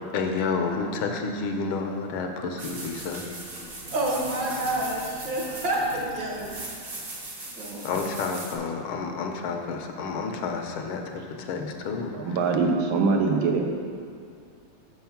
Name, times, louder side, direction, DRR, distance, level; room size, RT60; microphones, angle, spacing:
voice 1, 0.1-3.3 7.8-12.4, left 4 dB, 80° left, 4 dB, 1.6 m, -30 dB
sound 1, 2.6-8.6, right 2 dB, 40° right, 0.9 m, -39 dB
voice 2, 3.9-6.6 7.6-7.9 13.2-13.3, right 1 dB, 60° right, -3 dB, 2.1 m, -28 dB
voice 3, 12.1-13.7, right 4 dB, 75° right, 2 dB, 1.5 m, -23 dB
6.8 x 5.7 x 5.7 m, 2.3 s
omnidirectional pair, 2.3 m